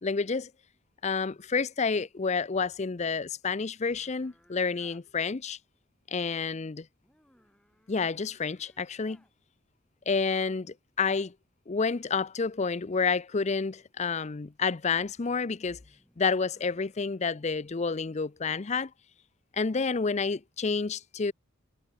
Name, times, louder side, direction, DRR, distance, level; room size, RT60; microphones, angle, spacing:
voice 1, 0.0-0.5 1.0-5.6 6.1-6.9 7.9-9.2 10.1-11.3 11.7-15.8 16.2-18.9 19.5-21.3, left 4 dB, 35° left, 0.5 m, -29 dB
sound 1, 3.9-5.1 7.0-9.3 14.6-17.3, equal, 5° left, 7.8 m, -65 dB
head